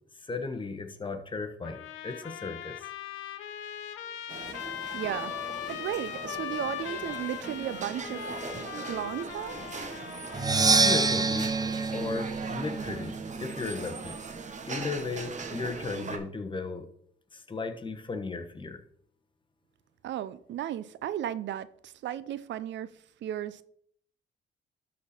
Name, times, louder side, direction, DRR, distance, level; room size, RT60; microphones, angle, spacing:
voice 1, 0.2-2.8 10.7-11.5 11.9-14.2 14.7-16.9 17.3-18.8, left 4 dB, 25° left, 1.1 m, -35 dB
Trumpet, 1.6-10.8, left 11 dB, 90° left, 0.7 m, -39 dB
sound 1, 4.3-16.2, right 4 dB, 35° right, 1.2 m, -40 dB
voice 2, 4.5-5.3 5.7-8.4 8.8-9.6 20.0-22.9 23.2-23.6, right 11 dB, 65° right, 0.5 m, -35 dB
Percussion, 10.3-14.1, right 4 dB, 20° right, 0.7 m, -27 dB
12.5 x 4.3 x 4.2 m
cardioid pair, 90°, 20 cm